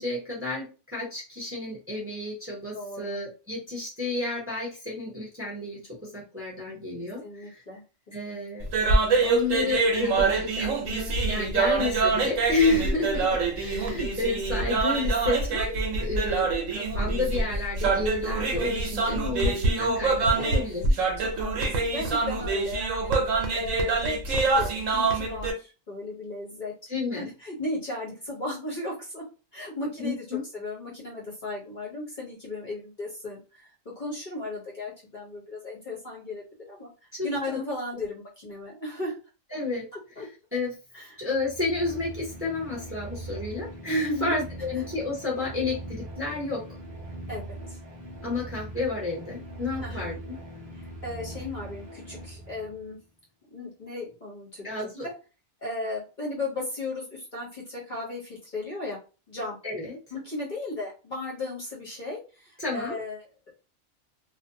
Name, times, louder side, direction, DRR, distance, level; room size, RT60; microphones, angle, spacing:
voice 1, 0.0-7.6 8.1-8.6 9.2-13.2 13.6-20.8 26.9-27.3 30.0-30.4 37.1-37.6 39.5-39.9 40.2-40.3 40.5-40.7 41.2-46.8 48.2-50.3 54.6-55.1 59.6-60.0 62.6-63.0, left 2 dB, 10° right, -5 dB, 0.7 m, -31 dB
voice 2, 2.7-3.2 7.0-7.8 8.3-8.4 20.4-20.7 21.2-26.7 27.1-29.2 29.5-39.1 39.9-40.3 40.9-41.2 44.1-44.3 47.3-47.8 49.8-50.2 50.7-53.0 53.5-55.1 55.6-59.0 59.3-59.6 60.1-63.2, left 2 dB, 40° left, -5 dB, 0.9 m, -36 dB
sound 1, 8.6-25.5, right 3 dB, 75° right, 1.1 m, -25 dB
sound 2, 41.2-52.9, right 1 dB, 45° right, 0.6 m, -41 dB
2.5 x 2.2 x 2.6 m, 0.33 s
omnidirectional pair, 1.4 m